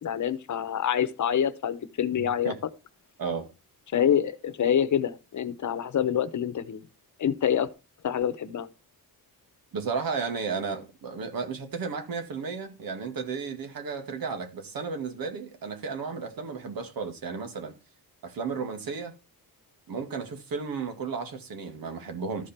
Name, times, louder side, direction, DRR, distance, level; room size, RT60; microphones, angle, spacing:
voice 1, 0.0-2.5 3.9-6.8 7.2-7.7 8.0-8.7, left 9 dB, 55° left, 1.0 m, -26 dB
voice 2, 2.1-2.6 3.2-3.5 9.7-17.7 18.2-19.1 19.9-22.5, right 5 dB, 75° right, 2.3 m, -33 dB
13.0 x 5.2 x 4.3 m
cardioid pair, 110°, 35 cm